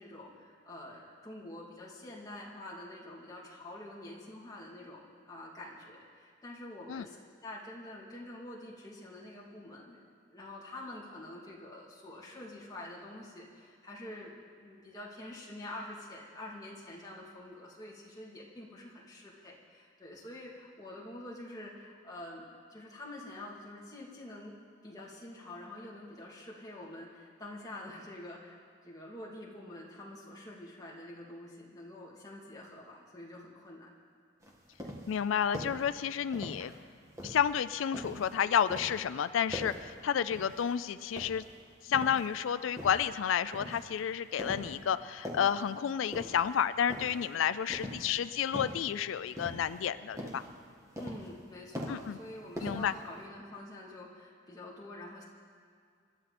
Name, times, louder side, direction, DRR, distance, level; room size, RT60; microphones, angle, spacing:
voice 1, 0.0-7.2 7.4-10.0 10.3-24.5 24.8-33.9 51.0-55.2, left 1 dB, 20° left, -5 dB, 2.6 m, -47 dB
sound 1, 34.4-35.2 35.5-35.9 36.3-36.8 37.2-38.3 38.7-39.0 39.5-39.9 40.3-40.7 41.1-42.3 42.8-43.1 43.5-43.9 44.4-44.8 45.1-45.6 46.1-46.5 46.9-47.3 47.7-48.1 48.5-48.9 49.4-49.9 50.2-50.5 51.0-51.4 51.7-52.3 52.6-53.2, equal, 15° right, 1.8 m, -42 dB
voice 2, 35.1-36.7 37.2-41.4 41.8-50.4 51.9-52.2 52.6-52.9, left 8 dB, 90° left, 14 dB, 0.4 m, -31 dB
26.5 x 12.0 x 4.2 m, 2.2 s
head